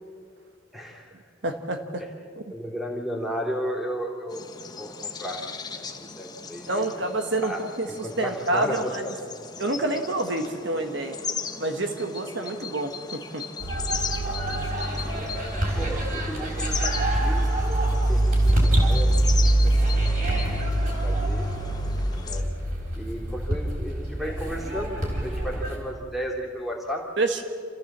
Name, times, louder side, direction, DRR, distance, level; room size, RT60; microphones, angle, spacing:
voice 1, 0.7-1.1 2.5-4.4 4.7-5.4 5.7-7.0 7.4-7.6 8.0-9.3 14.2-17.5 17.8-19.1 19.4-19.9 20.8-21.5 22.3-22.5 23.0-27.1, equal, ahead, -1 dB, 2.8 m, -34 dB
voice 2, 1.4-2.0 6.7-9.0 9.6-11.2 11.6-13.4 27.2-27.4, right 2 dB, 65° right, 6 dB, 1.4 m, -28 dB
sound 1, 4.3-22.4, left 5 dB, 20° left, 1.0 m, -37 dB
sound 2, 13.6-25.8, right 1 dB, 45° right, 4.4 m, -24 dB
28.0 x 14.5 x 7.4 m, 2.3 s
head